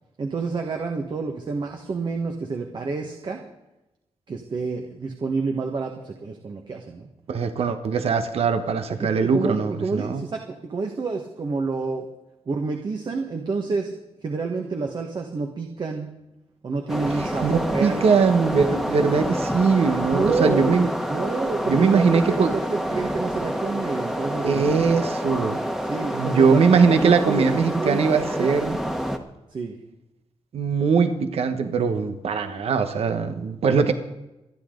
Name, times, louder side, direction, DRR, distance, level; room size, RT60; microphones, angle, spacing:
voice 1, 0.2-3.4 4.3-7.1 9.0-12.1 12.5-14.0 14.2-16.1 16.6-18.1 20.1-20.8 21.1-24.6 25.8-28.1 28.4-28.6 29.5-29.7, right 4 dB, 45° right, 3 dB, 1.5 m, -28 dB
voice 2, 7.3-10.2 17.4-20.9 21.7-22.6 24.4-25.6 26.1-28.8 30.5-33.9, right 5 dB, 70° right, 8 dB, 1.3 m, -21 dB
sound 1, 16.9-29.2, equal, 5° right, 1.4 m, -28 dB
27.0 x 10.5 x 3.9 m, 0.96 s
wide cardioid pair, 135°, 11 cm